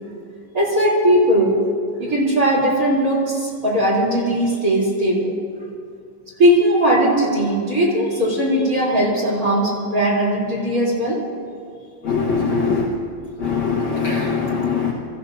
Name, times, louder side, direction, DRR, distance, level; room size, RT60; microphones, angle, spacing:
voice 1, 0.5-1.6 2.0-5.4 6.4-11.2, right 1 dB, 20° right, -5 dB, 2.9 m, -18 dB
voice 2, 12.0-12.9 13.4-14.9, left 5 dB, 80° left, -5 dB, 1.5 m, -21 dB
26.0 x 14.5 x 2.7 m, 2.3 s
omnidirectional pair, 5.3 m